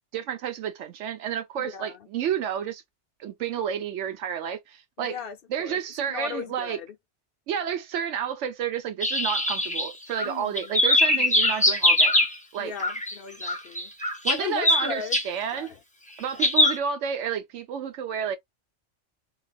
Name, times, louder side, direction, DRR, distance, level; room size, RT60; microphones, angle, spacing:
voice 1, 0.1-2.8 3.2-5.2 5.5-6.8 7.5-12.2 12.5-12.7 14.2-15.7 16.2-18.4, right 8 dB, 85° right, 0.9 m, -30 dB
voice 2, 1.6-1.9 5.0-6.9 10.2-10.8 11.1-11.3 12.6-13.9 14.3-15.2 15.5-15.8 16.3-16.4, left 6 dB, 60° left, 0.7 m, -37 dB
sound 1, 9.0-10.3 10.6-12.3 12.8-13.1 13.4-15.2 16.4-16.8, left 1 dB, 10° left, 0.4 m, -22 dB
3.9 x 2.2 x 2.3 m
omnidirectional pair, 1.2 m